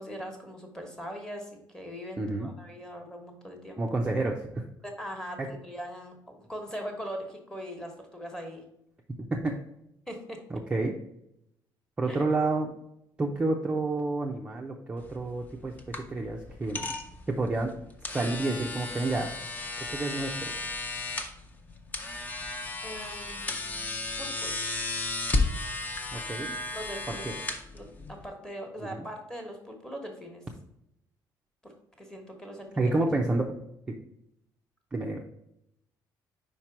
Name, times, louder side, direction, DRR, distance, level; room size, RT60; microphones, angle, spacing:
voice 1, 0.0-3.8 4.8-8.6 10.1-10.4 12.1-12.2 22.8-23.8 24.2-24.8 26.7-27.4 27.7-30.4 31.6-31.7 32.0-33.2, equal, 10° left, 3 dB, 1.2 m, -41 dB
voice 2, 2.2-2.5 3.8-4.6 5.4-5.5 9.3-9.6 10.5-11.0 12.0-12.7 13.2-15.7 16.1-16.9 17.3-17.7 18.1-19.3 19.9-20.5 26.1-26.5 27.1-27.3 28.9-29.1 32.8-33.4 33.9-34.0 34.9-35.2, right 2 dB, 15° right, 0 dB, 0.5 m, -29 dB
sound 1, 15.0-28.3, left 2 dB, 25° left, 0.7 m, -34 dB
5.2 x 4.4 x 4.7 m, 0.79 s
cardioid pair, 175°, 7 cm